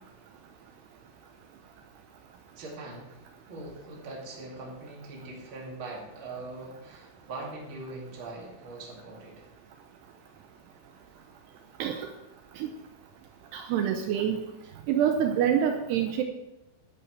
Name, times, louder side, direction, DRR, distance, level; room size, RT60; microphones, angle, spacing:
voice 1, 2.6-3.2 3.5-9.4, right 2 dB, 35° right, -2 dB, 2.2 m, -41 dB
voice 2, 11.8-12.1 12.6-12.7 13.5-14.4 14.9-16.2, right 9 dB, 90° right, 5 dB, 2.3 m, -26 dB
14.5 x 10.0 x 3.3 m, 0.98 s
omnidirectional pair, 5.6 m